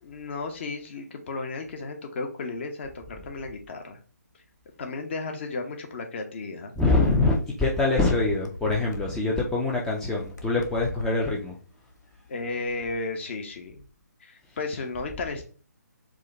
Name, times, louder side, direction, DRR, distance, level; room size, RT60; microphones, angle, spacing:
voice 1, 0.0-4.0 4.8-6.7 12.3-13.9 14.2-15.4, left 3 dB, 40° left, 4 dB, 1.0 m, -34 dB
voice 2, 6.8-11.5, left 3 dB, 5° left, -3 dB, 0.5 m, -24 dB
sound 1, 6.9-7.1 7.9-9.1 9.9-11.2 11.9-12.3, left 2 dB, 85° left, 0.9 m, -37 dB
4.8 x 2.3 x 3.9 m, 0.37 s
figure-of-eight pair, 150°, 10 cm